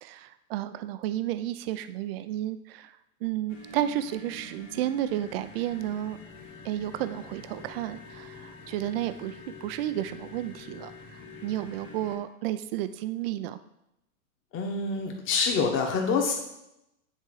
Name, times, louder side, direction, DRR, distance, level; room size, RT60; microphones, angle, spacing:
voice 1, 0.0-2.9 3.2-6.2 6.6-13.6, right 12 dB, 45° right, 12 dB, 0.5 m, -32 dB
sound 1, 3.5-12.2, left 3 dB, 60° left, 2.0 m, -46 dB
voice 2, 14.5-16.3, left 5 dB, 30° left, 2 dB, 1.5 m, -26 dB
9.4 x 3.6 x 4.8 m, 0.85 s
hypercardioid pair, 125°, 43 cm